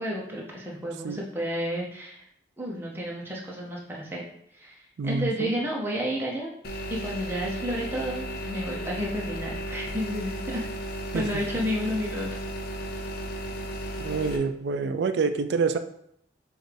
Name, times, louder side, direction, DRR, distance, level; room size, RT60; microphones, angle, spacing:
voice 1, 0.0-2.2 2.6-4.2 4.5-4.7 5.0-6.5 6.9-10.7 11.1-12.3, equal, 10° right, -3 dB, 0.7 m, -31 dB
voice 2, 5.0-5.5 11.1-11.4 14.0-15.8, right 4 dB, 60° right, 10 dB, 0.3 m, -27 dB
sound 1, 6.6-14.4, equal, 55° left, 0.6 m, -34 dB
6.2 x 2.4 x 3.3 m, 0.71 s
head